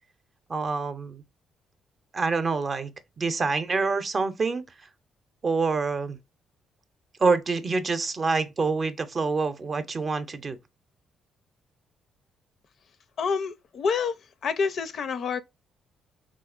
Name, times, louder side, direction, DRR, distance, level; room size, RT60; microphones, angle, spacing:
voice 1, 0.5-1.2 2.1-2.9 3.2-4.6 5.4-6.2 7.2-10.6, right 4 dB, 40° right, 0.6 m, -26 dB
voice 2, 13.2-14.2 14.4-15.4, left 5 dB, 60° left, 0.4 m, -27 dB
3.7 x 2.9 x 2.4 m
cardioid pair, 90°, 0 cm